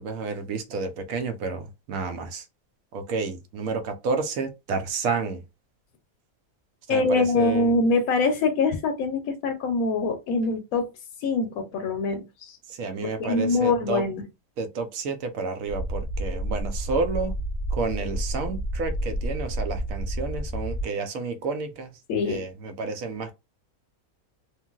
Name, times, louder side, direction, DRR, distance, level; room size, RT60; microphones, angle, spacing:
voice 1, 0.0-2.4 2.9-5.4 6.9-7.7 12.7-14.0 14.6-17.4 17.7-22.0 22.2-23.3, right 4 dB, 70° right, 1.0 m, -30 dB
voice 2, 6.9-10.9 11.2-12.6 13.2-14.2 22.1-22.4, left 3 dB, 75° left, 1.0 m, -24 dB
sound 1, 15.7-20.8, right 1 dB, 30° left, 0.6 m, -30 dB
3.1 x 2.5 x 2.3 m
omnidirectional pair, 1.5 m